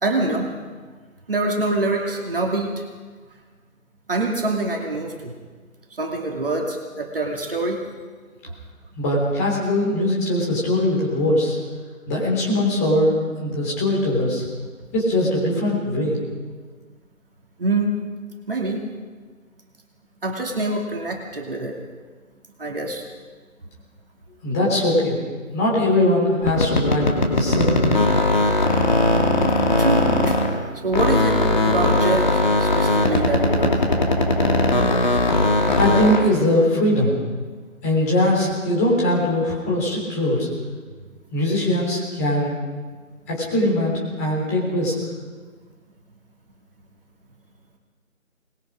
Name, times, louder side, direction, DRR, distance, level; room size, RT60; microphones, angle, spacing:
voice 1, 0.0-0.5 1.3-2.7 4.1-5.3 6.0-7.8 17.6-18.0 18.5-18.8 20.2-21.8 22.6-23.0 29.8-30.4 30.8-33.8, right 2 dB, 40° right, 1 dB, 2.6 m, -25 dB
voice 2, 9.0-11.6 12.1-14.5 14.9-16.2 24.4-25.2 25.5-28.0 35.7-37.1 37.8-40.5 41.3-42.6 43.3-44.9, left 1 dB, 10° left, -5 dB, 3.4 m, -21 dB
sound 1, 26.4-30.6 30.9-36.3, left 2 dB, 35° left, 2.2 m, -19 dB
24.5 x 20.5 x 5.1 m, 1.5 s
figure-of-eight pair, 165°, 42 cm